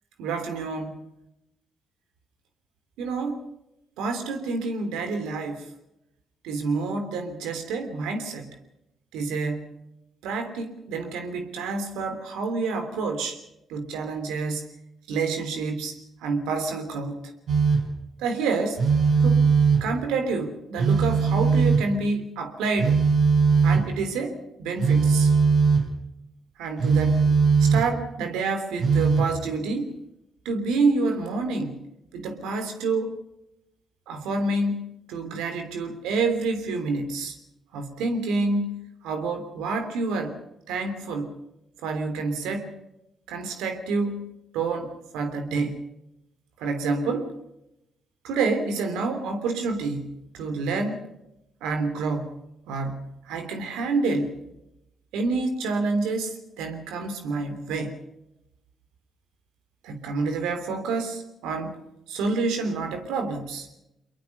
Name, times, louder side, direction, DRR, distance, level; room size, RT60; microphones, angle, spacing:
voice 1, 0.2-1.0 3.0-3.4 4.0-5.6 6.4-8.5 9.1-9.7 10.2-13.4 13.7-14.7 15.1-15.9 16.2-17.2 18.2-18.9 19.2-19.4 19.8-23.0 23.6-25.3 26.6-27.2 27.6-29.9 30.4-31.8 32.1-33.2 34.1-37.3 37.7-40.4 40.7-41.3 41.8-42.7 43.3-44.3 44.5-45.8 46.6-47.3 48.2-51.1 51.6-52.4 52.7-54.3 55.1-58.0 59.8-61.8 62.1-63.7, right 3 dB, 85° right, 7 dB, 3.2 m, -28 dB
Telephone, 17.5-18.0 18.8-20.0 20.8-22.0 22.8-24.0 24.8-25.9 26.8-28.0 28.8-29.4, right 5 dB, 65° right, 5.2 m, -20 dB
24.0 x 22.5 x 5.5 m, 0.87 s
supercardioid pair, 50°, 0 cm